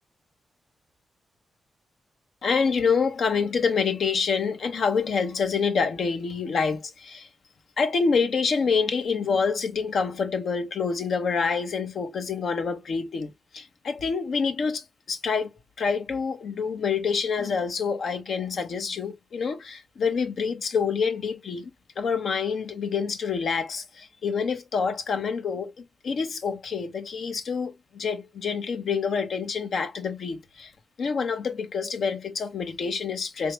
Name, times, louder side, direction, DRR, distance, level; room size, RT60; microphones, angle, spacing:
voice 1, 2.4-7.3 7.8-15.5 15.8-30.7 31.0-33.5, left 5 dB, 65° left, 0.8 m, -27 dB
3.5 x 2.7 x 3.0 m
cardioid pair, 90°, 0 cm